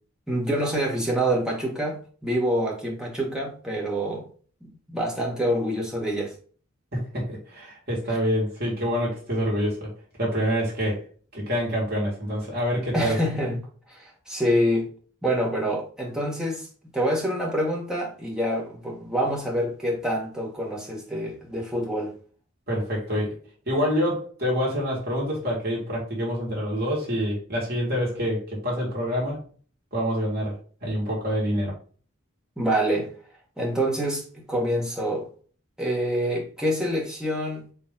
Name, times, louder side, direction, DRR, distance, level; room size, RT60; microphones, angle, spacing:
voice 1, 0.3-4.3 4.6-6.3 12.9-13.6 13.9-14.9 15.2-16.7 16.9-22.1 32.6-33.1 33.6-35.3 35.8-37.7, equal, 5° right, 1.2 m, -26 dB
voice 2, 6.9-9.9 10.2-11.0 11.3-13.2 22.7-23.3 23.7-29.4 29.9-30.6 30.8-31.7, equal, 50° right, 2.1 m, -26 dB
4.4 x 3.3 x 3.7 m
head